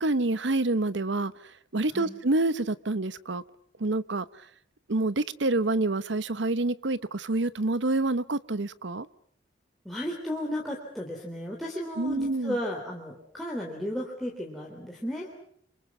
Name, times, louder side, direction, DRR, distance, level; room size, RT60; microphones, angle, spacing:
voice 1, 0.0-3.4 3.8-4.5 4.9-9.1 12.0-12.6, right 2 dB, 70° right, 17 dB, 1.0 m, -27 dB
voice 2, 9.9-15.3, equal, ahead, -3 dB, 3.5 m, -34 dB
29.5 x 25.5 x 6.1 m, 0.66 s
head